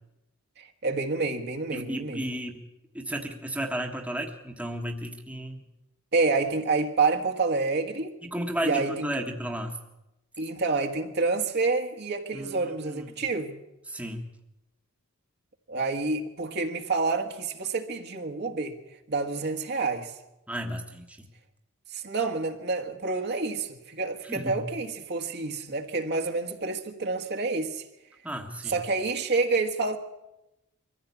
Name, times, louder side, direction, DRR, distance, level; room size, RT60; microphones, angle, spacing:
voice 1, 0.6-2.2 6.1-8.1 8.6-9.1 10.4-13.6 15.7-18.8 19.1-20.1 21.9-27.8 28.6-30.0, right 3 dB, 50° right, 1.6 m, -28 dB
voice 2, 1.7-2.6 2.9-5.6 8.2-9.8 12.3-13.2 13.9-14.2 20.5-21.2 24.2-24.7 28.2-28.8, right 1 dB, 5° right, 1.5 m, -33 dB
23.5 x 15.0 x 8.3 m
head